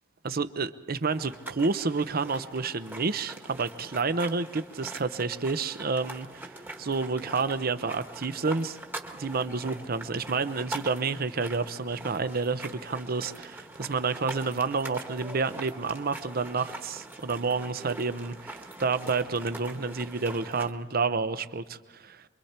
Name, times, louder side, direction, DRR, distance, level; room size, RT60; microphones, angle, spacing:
voice 1, 0.2-8.8 9.1-22.2, right 4 dB, 50° right, 12 dB, 0.8 m, -30 dB
sound 1, 1.1-20.7, right 2 dB, 10° right, 1.4 m, -43 dB
27.5 x 23.5 x 4.4 m, 1.3 s
head